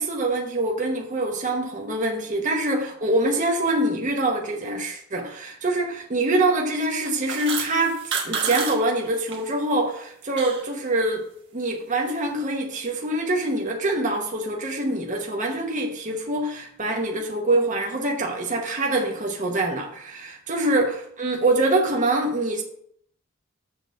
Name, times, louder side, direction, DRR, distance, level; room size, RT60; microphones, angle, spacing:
voice 1, 0.0-11.2 11.5-22.6, right 2 dB, 35° right, 1.1 m, -25 dB
sound 1, 7.0-9.4 9.8-10.7, right 5 dB, 60° right, 1.5 m, -29 dB
7.6 x 3.9 x 6.3 m
head